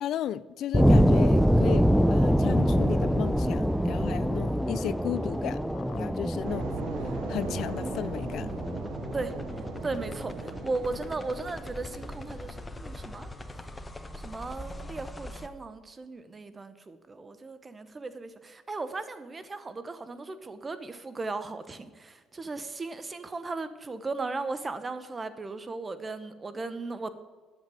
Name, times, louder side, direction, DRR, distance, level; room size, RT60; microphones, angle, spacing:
voice 1, 0.0-6.7 7.3-8.5, left 11 dB, 65° left, 0.3 m, -34 dB
sound 1, 0.7-11.5, equal, ahead, 0.4 m, -25 dB
sound 2, 2.5-15.5, left 1 dB, 15° left, 0.8 m, -44 dB
sound 3, 6.4-12.7, right 9 dB, 85° right, 0.6 m, -42 dB
voice 2, 9.8-13.3 14.2-27.1, right 3 dB, 25° right, 0.9 m, -36 dB
9.0 x 7.3 x 7.6 m
cardioid pair, 90°, 0 cm